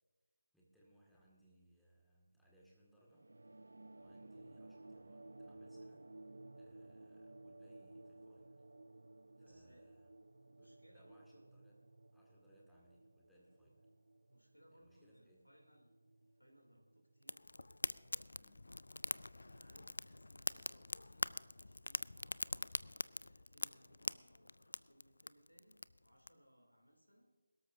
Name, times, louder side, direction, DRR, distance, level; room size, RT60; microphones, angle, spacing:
voice 1, 0.5-3.3 4.0-6.1 6.6-8.7 9.5-10.2 10.6-11.8 12.1-13.9 14.7-15.5 18.4-18.7, right 1 dB, ahead, -6 dB, 2.0 m, -69 dB
sound 1, 3.1-18.0, right 2 dB, 65° right, 0.4 m, -58 dB
voice 2, 9.3-9.9 10.4-11.5 14.3-18.5 19.3-22.7 23.3-27.3, equal, 90° left, 1 dB, 2.9 m, -68 dB
Fire, 17.2-26.3, left 2 dB, 65° left, 0.3 m, -44 dB
22.0 x 13.0 x 2.7 m, 1.5 s
figure-of-eight pair, 155°, 0 cm